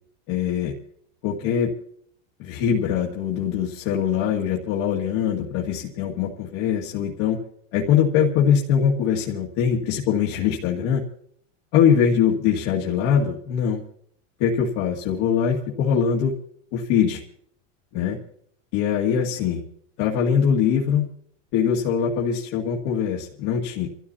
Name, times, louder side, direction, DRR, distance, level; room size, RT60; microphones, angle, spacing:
voice 1, 0.3-0.7 1.2-1.7 2.4-7.4 7.7-11.0 11.7-13.8 14.4-16.3 16.7-17.2 17.9-18.2 18.7-19.6 20.0-21.1 21.5-23.9, left 8 dB, 50° left, -3 dB, 2.1 m, -22 dB
29.5 x 13.5 x 2.8 m, 0.64 s
supercardioid pair, 150°, 39 cm